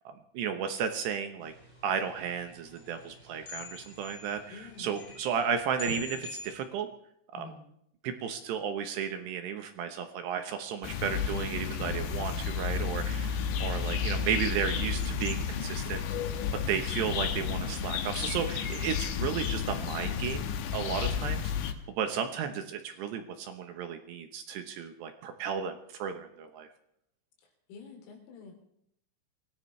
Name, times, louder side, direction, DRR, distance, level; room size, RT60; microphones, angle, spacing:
voice 1, 0.3-1.5 1.8-6.9 7.3-7.5 8.0-16.0 16.7-21.5 22.0-26.7, right 7 dB, 75° right, 7 dB, 2.7 m, -34 dB
sound 1, 1.4-6.5, left 4 dB, 15° left, 7.9 m, -45 dB
voice 2, 4.5-4.9 7.3-7.6 20.9-21.2 27.7-28.5, left 3 dB, 85° left, 2 dB, 6.2 m, -48 dB
sound 2, 10.8-21.7, left 7 dB, 70° left, 3.3 m, -32 dB
24.5 x 17.5 x 3.2 m, 0.73 s
omnidirectional pair, 6.0 m